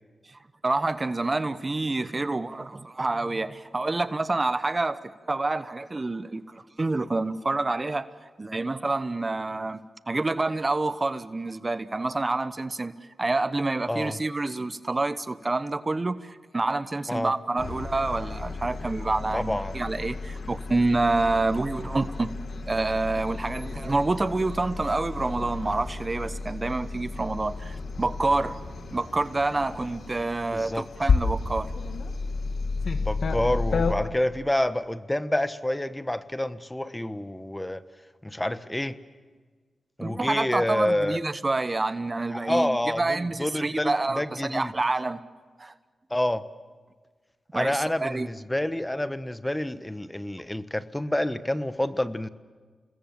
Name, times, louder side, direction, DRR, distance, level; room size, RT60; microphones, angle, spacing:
voice 1, 0.3-5.0 5.3-8.1 8.4-9.8 10.1-12.9 13.2-22.4 22.6-28.6 28.9-31.7 40.0-45.2 45.6-45.7 47.5-48.3, right 2 dB, 35° right, 13 dB, 1.0 m, -27 dB
voice 2, 13.9-14.2 17.1-17.3 19.3-19.7 30.5-30.8 33.0-37.8 38.2-39.0 40.0-41.2 42.3-44.7 46.1-46.4 47.5-52.3, left 1 dB, 15° left, 12 dB, 1.2 m, -28 dB
sound 1, 17.6-33.9, left 4 dB, 70° left, 1.7 m, -32 dB
29.5 x 20.5 x 7.5 m, 1.5 s
supercardioid pair, 40°, 0 cm